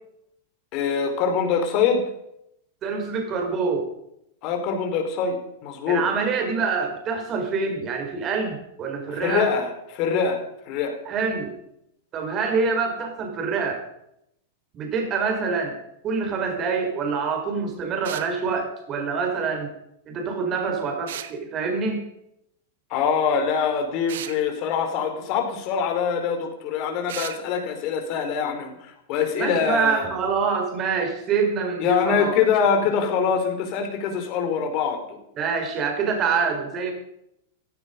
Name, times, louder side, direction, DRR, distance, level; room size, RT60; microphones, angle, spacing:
voice 1, 0.7-2.1 4.4-6.0 9.1-10.4 10.7-11.0 22.9-30.1 31.8-35.2, left 6 dB, 45° left, 5 dB, 4.6 m, -24 dB
voice 2, 2.8-3.9 5.9-9.5 11.0-11.6 12.1-13.8 14.7-15.8 16.0-19.7 20.1-22.0 29.3-32.3 35.4-36.9, right 5 dB, 35° right, 4 dB, 4.7 m, -26 dB
sound 1, 18.0-18.3 21.1-21.3 24.1-24.4 27.1-27.4, right 11 dB, 60° right, 1.3 m, -34 dB
16.5 x 15.5 x 5.3 m, 0.78 s
figure-of-eight pair, 95°, 0 cm